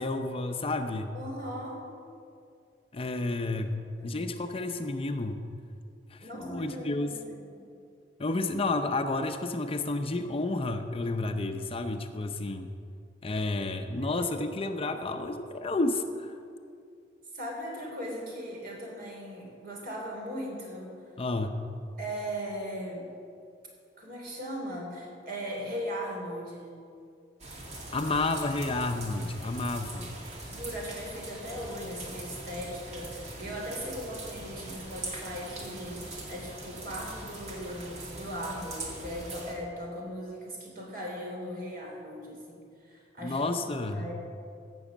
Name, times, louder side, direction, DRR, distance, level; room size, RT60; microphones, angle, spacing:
voice 1, 0.0-1.1 2.9-5.4 6.1-7.2 8.2-12.7 13.2-16.4 21.2-21.5 27.9-30.1 43.2-44.1, left 2 dB, 35° left, 7 dB, 0.6 m, -31 dB
voice 2, 1.1-1.8 4.0-4.4 6.2-7.6 13.9-15.0 17.3-20.9 22.0-23.1 24.0-26.8 30.5-43.5 43.9-44.1, equal, 55° right, -1 dB, 3.4 m, -39 dB
sound 1, 27.4-39.5, right 2 dB, 40° right, 2.2 m, -42 dB
15.5 x 6.2 x 7.3 m, 2.4 s
head